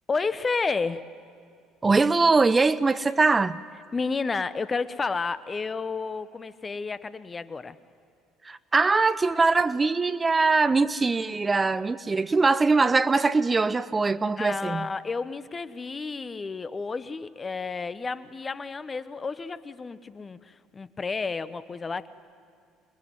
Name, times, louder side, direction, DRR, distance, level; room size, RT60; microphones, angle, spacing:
voice 1, 0.1-1.1 3.9-7.8 14.4-22.1, left 4 dB, 30° left, 1.1 m, -31 dB
voice 2, 1.8-3.6 8.4-14.9, right 3 dB, 25° right, 0.7 m, -22 dB
27.0 x 22.5 x 9.4 m
hypercardioid pair, 60°, 0 cm